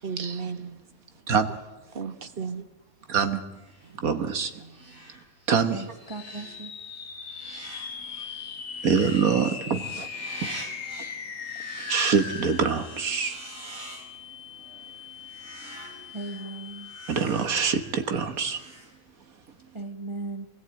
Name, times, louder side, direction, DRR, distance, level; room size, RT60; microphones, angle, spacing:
voice 1, 0.0-0.8 1.9-2.7 3.8-4.0 4.6-5.0, right 5 dB, 45° right, 1.3 m, -35 dB
voice 2, 3.1-3.4 4.0-4.5 5.5-5.8 8.8-10.1 10.4-10.5 11.9-13.4 17.1-18.6, right 6 dB, 90° right, 1.9 m, -24 dB
sound 1, 3.5-19.5, right 1 dB, 70° right, 4.5 m, -46 dB
voice 3, 5.7-6.7 16.1-16.9 19.7-20.5, right 3 dB, 20° right, 1.5 m, -37 dB
sound 2, 6.0-17.5, left 6 dB, 65° left, 1.5 m, -39 dB
23.0 x 18.0 x 9.0 m
omnidirectional pair, 1.5 m